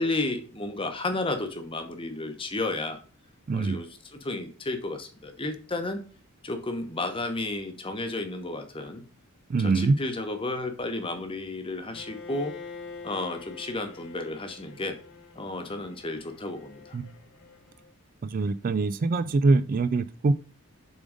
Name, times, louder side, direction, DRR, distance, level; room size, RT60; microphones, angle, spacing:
voice 1, 0.0-3.0 3.5-6.0 6.4-9.0 9.6-12.5 13.0-15.0 15.4-17.0, left 2 dB, 25° left, 7 dB, 0.9 m, -32 dB
voice 2, 3.5-3.8 9.5-10.0 16.9-17.1 18.2-20.3, right 3 dB, 40° right, 14 dB, 0.3 m, -24 dB
Bowed string instrument, 11.9-17.9, left 4 dB, 70° left, 1.2 m, -46 dB
7.1 x 3.8 x 5.0 m, 0.39 s
head